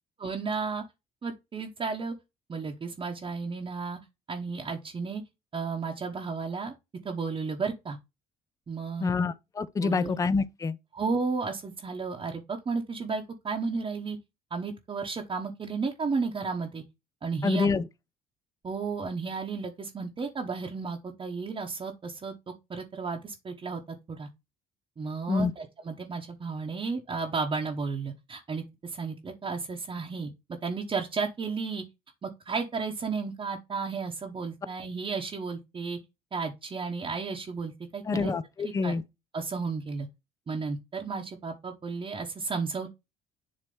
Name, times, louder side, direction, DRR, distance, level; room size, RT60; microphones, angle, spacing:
voice 1, 0.2-0.8 1.2-2.1 2.5-4.0 4.3-5.2 5.5-6.7 7.0-8.0 8.7-9.2 9.8-10.2 10.9-14.2 14.5-16.8 17.2-17.7 18.6-24.3 25.0-30.3 30.6-31.8 32.2-36.0 36.3-38.3 38.6-39.0 39.3-40.1 40.5-42.9, right 4 dB, 30° right, 1.0 m, -33 dB
voice 2, 9.0-10.8 17.4-17.9 25.3-25.5 38.1-39.0, left 4 dB, 20° left, 0.5 m, -27 dB
7.6 x 2.9 x 5.3 m
cardioid pair, 110°, 17 cm